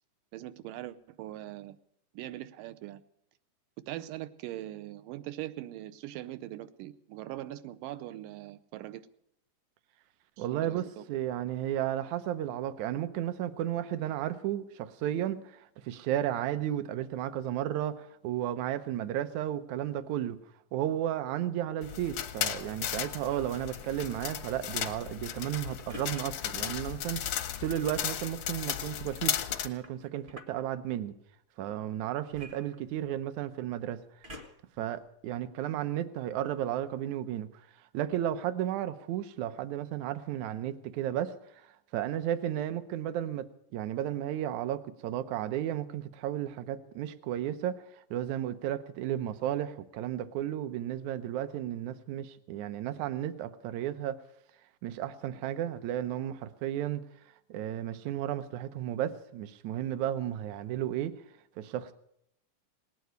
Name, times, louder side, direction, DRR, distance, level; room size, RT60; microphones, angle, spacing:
voice 1, 0.3-1.8 2.1-3.0 3.9-9.1 10.4-11.0, right 14 dB, 90° right, 2.4 m, -41 dB
voice 2, 10.4-20.4 20.7-31.1 31.6-34.0 34.8-37.5 37.9-41.3 41.9-47.8 48.1-54.2 54.8-57.0 57.5-61.2 61.6-61.9, right 11 dB, 75° right, 2.0 m, -33 dB
sound 1, 21.8-29.7, left 10 dB, 75° left, 1.3 m, -35 dB
sound 2, 23.2-23.6 25.9-26.2 27.6-28.0 29.3-30.6 32.3-33.3 34.2-34.8 35.4-35.5, left 1 dB, 30° right, 0.8 m, -48 dB
19.0 x 9.6 x 7.9 m
omnidirectional pair, 3.7 m